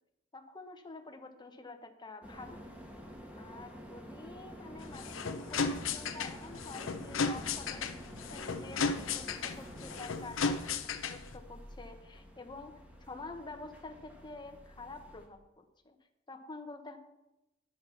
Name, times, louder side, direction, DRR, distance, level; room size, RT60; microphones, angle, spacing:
voice 1, 0.3-2.7 3.4-12.8 13.1-16.0 16.3-17.0, left 3 dB, 25° left, 6 dB, 1.0 m, -48 dB
sound 1, 2.2-15.3, equal, 10° right, 1.6 m, -49 dB
sound 2, 4.8-11.4, left 4 dB, 90° left, 0.8 m, -35 dB
10.5 x 7.5 x 5.7 m, 0.96 s
head